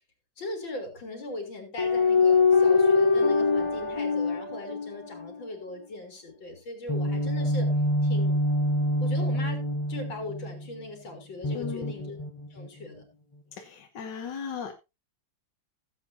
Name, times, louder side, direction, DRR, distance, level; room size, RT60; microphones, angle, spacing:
voice 1, 0.4-7.7 8.0-8.4 9.0-9.6 9.9-12.2 12.5-13.0, left 2 dB, 85° left, 3 dB, 3.8 m, -39 dB
sound 1, 1.8-5.5 6.9-10.6 11.4-12.7, left 3 dB, 30° left, 0.5 m, -24 dB
voice 2, 11.5-11.9 13.6-14.7, left 7 dB, 70° left, 3 dB, 1.7 m, -36 dB
16.5 x 8.0 x 2.7 m, 0.25 s
omnidirectional pair, 2.0 m